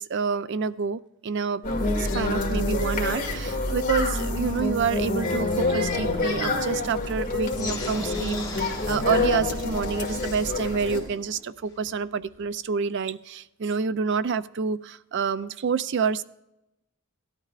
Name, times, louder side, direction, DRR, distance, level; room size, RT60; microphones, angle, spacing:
voice 1, 0.0-16.2, right 5 dB, 55° right, 0.4 m, -28 dB
sound 1, 1.6-11.0, left 2 dB, 40° left, 1.9 m, -27 dB
sound 2, 7.5-12.5, left 4 dB, 15° left, 1.0 m, -41 dB
16.5 x 12.0 x 2.5 m
head